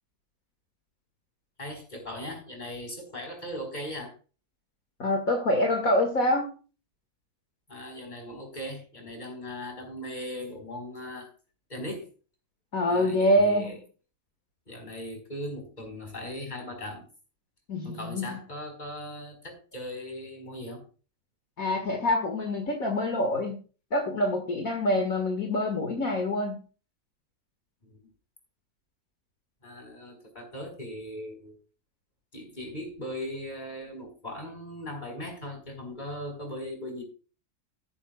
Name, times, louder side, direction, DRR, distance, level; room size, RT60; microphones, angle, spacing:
voice 1, 1.6-4.1 7.7-11.3 11.7-12.1 12.9-13.8 14.7-17.1 17.8-20.8 27.8-28.1 29.6-31.6 32.3-37.0, left 1 dB, 30° left, 3 dB, 4.8 m, -39 dB
voice 2, 5.0-6.5 12.7-13.8 17.7-18.3 21.6-23.6 23.9-26.6, left 1 dB, 65° left, 3 dB, 2.4 m, -26 dB
14.0 x 11.5 x 2.3 m, 0.35 s
omnidirectional pair, 1.6 m